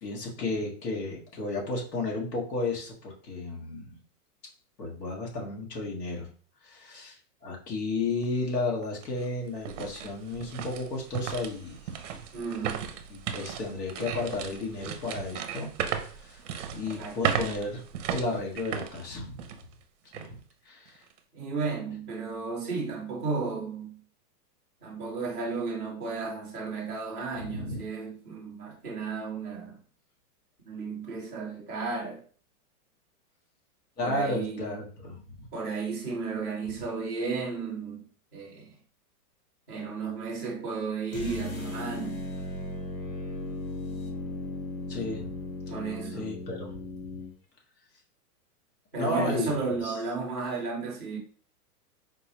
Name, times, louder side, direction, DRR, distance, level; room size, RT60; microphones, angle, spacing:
voice 1, 0.0-3.9 4.8-6.3 6.6-11.8 13.1-15.7 16.0-16.4 16.7-17.8 18.1-19.4 20.1-20.4 20.6-21.0 27.4-27.8 34.0-35.5 44.9-45.4 46.2-47.2 49.0-49.6 49.8-50.0, left 2 dB, 90° left, 1.5 m, -33 dB
sound 1, 8.2-8.3 8.8-19.7 20.1-20.3 20.9-21.2, right 8 dB, 50° right, 0.5 m, -35 dB
voice 2, 12.3-12.9 17.0-17.2 21.3-24.0 24.8-29.8 30.6-32.2 34.0-34.7 35.5-38.0 38.3-38.7 39.7-42.3 45.7-46.3 48.9-51.2, right 4 dB, 10° left, 0.3 m, -33 dB
sound 2, 41.1-47.3, left 2 dB, 55° left, 1.3 m, -37 dB
4.3 x 2.1 x 2.9 m
supercardioid pair, 160°, 47 cm